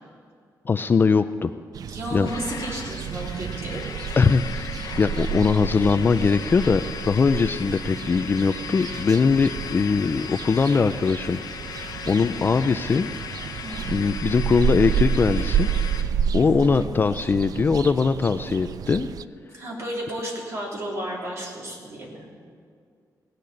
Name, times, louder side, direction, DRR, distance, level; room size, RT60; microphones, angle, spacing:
voice 1, 0.7-1.5 2.1-2.3 4.2-4.7 5.0-11.4 12.1-13.1 13.9-15.7 16.3-19.1, left 5 dB, 30° left, 10 dB, 0.4 m, -21 dB
sound 1, 1.7-19.2, right 8 dB, 65° right, 0.3 m, -30 dB
voice 2, 1.9-3.9 13.6-13.9 16.3-16.8 19.5-22.3, right 1 dB, 45° right, -3 dB, 3.4 m, -33 dB
sound 2, 2.2-16.0, left 7 dB, 75° left, 0.9 m, -37 dB
17.5 x 6.6 x 9.9 m, 2.2 s
wide cardioid pair, 160°, 7 cm